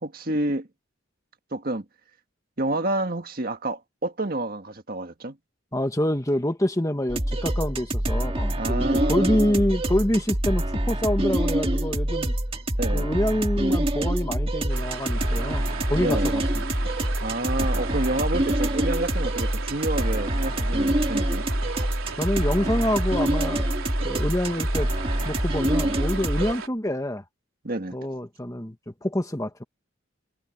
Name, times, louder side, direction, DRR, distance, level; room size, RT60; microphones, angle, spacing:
voice 1, 0.0-0.7 1.5-1.8 2.6-5.4 8.5-9.6 12.8-13.1 16.0-16.4 17.2-21.5 27.6-28.0, right 2 dB, 45° right, 1.8 m, -29 dB
voice 2, 5.7-12.3 12.9-16.6 22.2-23.7 24.0-24.9 25.2-27.2 27.9-29.6, left 1 dB, 15° left, 1.5 m, -26 dB
sound 1, 7.1-26.5, right 1 dB, 30° right, 1.9 m, -25 dB
sound 2, 14.7-26.7, right 5 dB, 85° right, 3.8 m, -36 dB
head